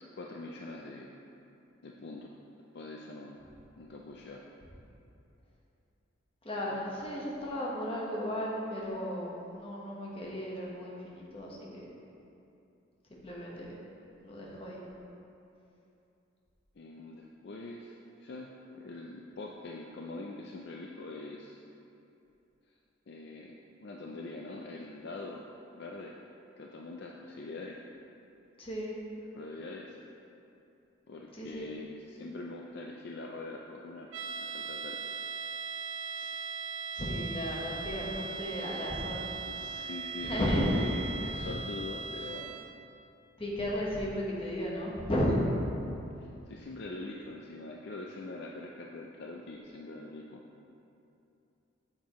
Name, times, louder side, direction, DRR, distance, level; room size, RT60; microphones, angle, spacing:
voice 1, 0.1-1.1 1.8-2.4 2.7-3.5 3.8-4.4 6.6-6.9 16.8-21.6 23.1-25.4 25.7-26.2 26.6-27.8 29.3-30.0 31.1-34.1 34.5-35.0 39.4-42.5 46.2-50.4, left 2 dB, 55° left, 0 dB, 0.4 m, -43 dB
voice 2, 6.4-11.9 13.1-13.7 14.2-14.9 28.6-28.9 31.3-31.7 36.2-36.3 36.9-39.4 40.2-40.7 41.3-41.5 43.4-45.5, equal, 30° left, -4 dB, 1.3 m, -34 dB
sound 1, 34.1-42.8, right 5 dB, 65° right, 0.5 m, -39 dB
8.6 x 7.4 x 3.1 m, 2.7 s
head